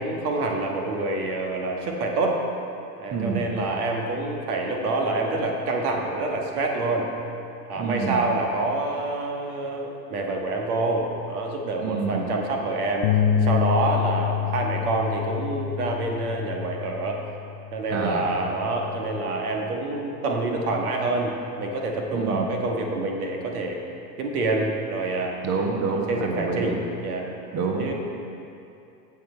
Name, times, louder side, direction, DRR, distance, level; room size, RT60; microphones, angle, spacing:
voice 1, 0.0-2.4 3.0-7.1 7.7-13.1 13.4-17.2 17.7-23.8 24.2-25.4 26.1-27.3 27.8-27.9, right 2 dB, 60° right, 1 dB, 1.6 m, -27 dB
voice 2, 3.1-3.5 7.8-8.2 11.8-12.2 17.9-18.2 22.1-22.4 25.4-26.7 27.5-27.9, right 4 dB, 30° right, 0 dB, 1.5 m, -27 dB
sound 1, 13.0-19.3, left 9 dB, 30° left, 0.4 m, -27 dB
16.5 x 6.0 x 4.5 m, 2.7 s
figure-of-eight pair, 85°, 50 cm